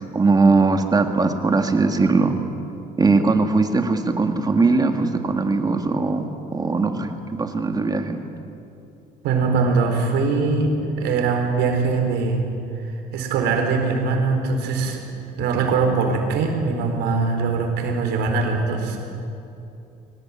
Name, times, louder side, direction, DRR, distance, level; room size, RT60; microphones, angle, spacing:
voice 1, 0.0-2.4 3.0-8.2, right 3 dB, 25° right, 6 dB, 2.1 m, -20 dB
voice 2, 9.2-10.7 11.0-12.4 12.8-15.0 15.4-19.0, right 4 dB, 85° right, 3 dB, 4.4 m, -22 dB
23.5 x 18.5 x 9.0 m, 2.7 s
cardioid pair, 110°, 17 cm